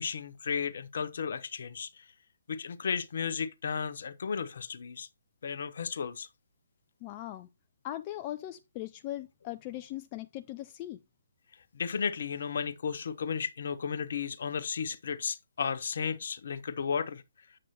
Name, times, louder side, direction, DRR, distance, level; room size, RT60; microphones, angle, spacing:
voice 1, 0.0-2.1 2.5-5.1 5.4-6.3 11.7-17.2, left 6 dB, 55° left, 0.8 m, -34 dB
voice 2, 7.0-7.5 7.8-11.0, left 14 dB, 30° left, 0.3 m, -39 dB
7.6 x 7.5 x 2.8 m
figure-of-eight pair, 135°, 0 cm